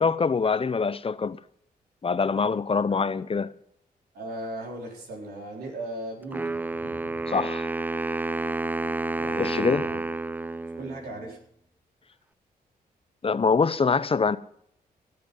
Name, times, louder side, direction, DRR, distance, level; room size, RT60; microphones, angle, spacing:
voice 1, 0.0-1.4 2.0-3.5 7.3-7.7 9.4-9.9 13.2-14.4, left 5 dB, 35° left, 0.7 m, -24 dB
voice 2, 4.1-7.3 9.1-10.0 10.8-11.4, right 1 dB, 85° right, 4.2 m, -38 dB
Wind instrument woodwind instrument, 6.3-11.3, right 3 dB, 10° right, 0.4 m, -30 dB
17.5 x 7.7 x 5.4 m
cardioid pair, 60°, 16 cm